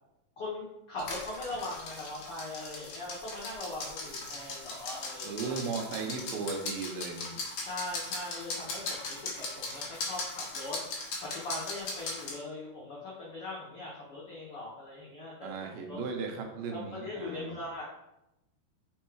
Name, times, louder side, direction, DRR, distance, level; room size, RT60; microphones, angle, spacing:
voice 1, 0.4-5.5 7.6-10.8 11.2-16.0 16.7-17.8, left 2 dB, 85° left, -6 dB, 1.2 m, -40 dB
sound 1, 1.0-12.4, left 3 dB, 60° left, 1.7 m, -39 dB
voice 2, 5.2-7.4 15.4-17.6, right 4 dB, 75° right, 2 dB, 2.5 m, -36 dB
5.4 x 4.2 x 4.6 m, 0.90 s
omnidirectional pair, 4.4 m